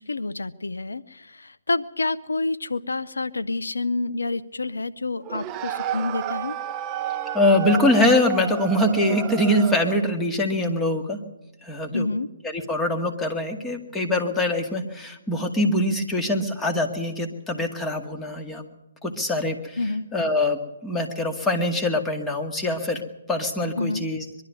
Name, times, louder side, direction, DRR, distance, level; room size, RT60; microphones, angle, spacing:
voice 1, 0.0-6.6 11.9-12.3 19.8-20.1 23.8-24.1, left 3 dB, 85° left, 15 dB, 0.7 m, -28 dB
sound 1, 5.2-10.1, right 10 dB, 25° right, 0.7 m, -31 dB
voice 2, 7.3-11.2 11.6-12.1 12.4-18.6 19.0-19.8 20.1-23.0 23.3-24.3, left 1 dB, 10° left, 4 dB, 2.1 m, -23 dB
23.0 x 12.0 x 9.5 m, 0.92 s
figure-of-eight pair, 140°, 0 cm